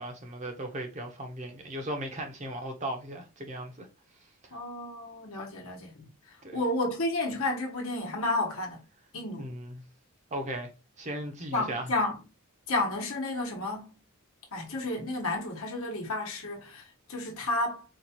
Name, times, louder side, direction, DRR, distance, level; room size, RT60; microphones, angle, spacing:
voice 1, 0.0-3.9 6.4-6.6 9.4-9.8 10.3-10.7 11.0-11.9, right 1 dB, 30° right, 0.7 m, -37 dB
voice 2, 4.5-6.1 6.5-8.8 9.1-9.5 11.5-12.2 12.7-14.0 14.5-16.8 17.1-17.8, left 2 dB, 70° left, 1.1 m, -31 dB
4.4 x 2.3 x 2.8 m
head